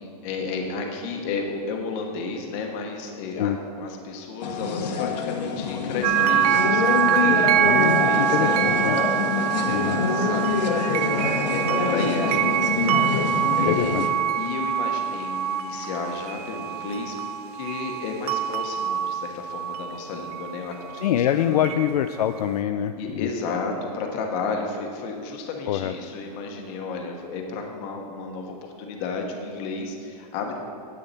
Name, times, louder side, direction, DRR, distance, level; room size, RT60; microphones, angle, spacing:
voice 1, 0.0-8.8 9.1-10.8 11.5-12.8 13.6-14.0 14.3-21.8 23.0-30.6, left 4 dB, 30° left, 2 dB, 1.1 m, -32 dB
sound 1, 4.4-14.1, left 4 dB, 90° left, 1.2 m, -26 dB
sound 2, 6.0-21.1 21.6-22.0, right 9 dB, 65° right, 0.5 m, -25 dB
voice 2, 7.6-9.0 9.7-10.0 13.7-14.0 21.0-23.3 25.7-25.9, left 10 dB, 65° left, 8 dB, 0.4 m, -25 dB
9.9 x 8.9 x 4.2 m, 2.5 s
supercardioid pair, 170°, 21 cm